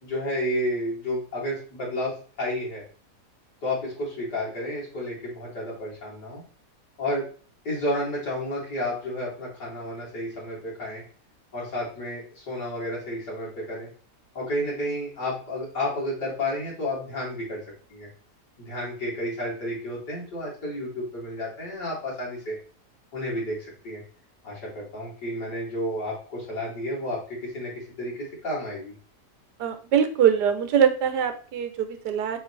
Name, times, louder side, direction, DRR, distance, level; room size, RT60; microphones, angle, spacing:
voice 1, 0.0-2.8 3.6-6.4 7.0-7.3 7.7-11.0 11.5-13.9 14.3-17.6 17.9-18.1 18.6-22.6 23.1-24.0 24.4-28.1 28.4-29.0, left 1 dB, 90° left, -6 dB, 3.8 m, -31 dB
voice 2, 29.6-32.4, right 8 dB, 80° right, 8 dB, 1.5 m, -23 dB
7.7 x 4.7 x 3.2 m, 0.41 s
omnidirectional pair, 1.8 m